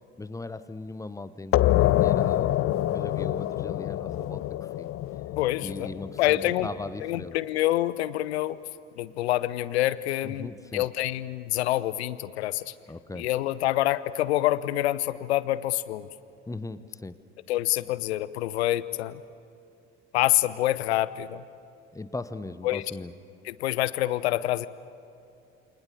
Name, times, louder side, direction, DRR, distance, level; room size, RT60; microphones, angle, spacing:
voice 1, 0.2-2.5 2.9-4.9 5.6-7.4 10.2-10.8 12.9-13.3 16.5-17.2 21.9-23.1, left 2 dB, 10° left, 13 dB, 1.1 m, -38 dB
sound 1, 1.5-6.9, left 14 dB, 40° left, 0.7 m, -26 dB
voice 2, 5.4-5.9 6.2-6.7 7.0-8.6 9.0-12.7 13.1-16.1 17.5-19.2 20.1-21.4 22.6-22.8 23.4-24.7, left 15 dB, 70° left, 17 dB, 0.8 m, -26 dB
29.0 x 24.5 x 7.1 m, 2.6 s
figure-of-eight pair, 55°, 34 cm